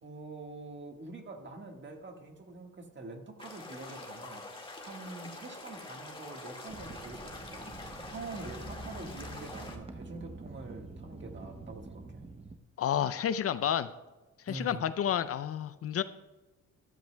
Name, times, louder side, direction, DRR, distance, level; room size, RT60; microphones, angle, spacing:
voice 1, 0.0-7.7 8.1-12.3 14.5-14.9, right 2 dB, 40° right, 4 dB, 1.6 m, -45 dB
sound 1, 3.4-9.8, left 2 dB, 15° left, 1.8 m, -45 dB
sound 2, 6.7-12.6, right 2 dB, 20° right, 0.7 m, -46 dB
voice 2, 12.8-13.9 14.4-16.0, left 9 dB, 50° left, 13 dB, 0.5 m, -30 dB
13.5 x 13.0 x 2.2 m, 1.1 s
cardioid pair, 90°, 30 cm